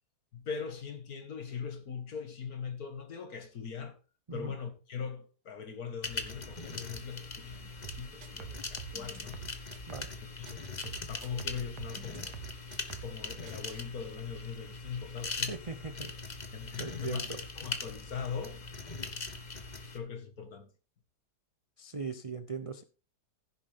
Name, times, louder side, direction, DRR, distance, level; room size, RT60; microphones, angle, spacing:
voice 1, 0.3-4.0 4.3-9.4 10.4-12.4 13.0-16.1 16.5-18.6 19.8-20.7, left 6 dB, 65° left, 2.2 m, -41 dB
sound 1, 6.0-20.0, left 3 dB, 30° left, 1.3 m, -41 dB
sound 2, 7.8-10.2 10.5-13.2 13.5-13.8, right 10 dB, 80° right, 1.5 m, -48 dB
voice 2, 15.5-16.1 16.8-17.4 21.8-22.8, right 4 dB, 45° right, 0.4 m, -39 dB
15.5 x 7.4 x 3.6 m
omnidirectional pair, 1.7 m